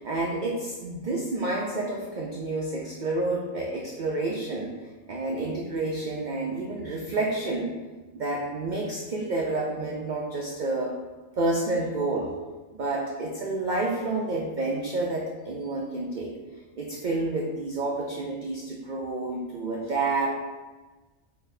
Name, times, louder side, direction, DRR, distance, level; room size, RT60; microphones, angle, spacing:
voice 1, 0.0-4.7 5.1-7.7 8.1-10.9 11.4-12.3 12.7-16.3 16.8-20.3, right 2 dB, 60° right, -2 dB, 0.5 m, -29 dB
4.5 x 4.0 x 2.7 m, 1.3 s
omnidirectional pair, 1.4 m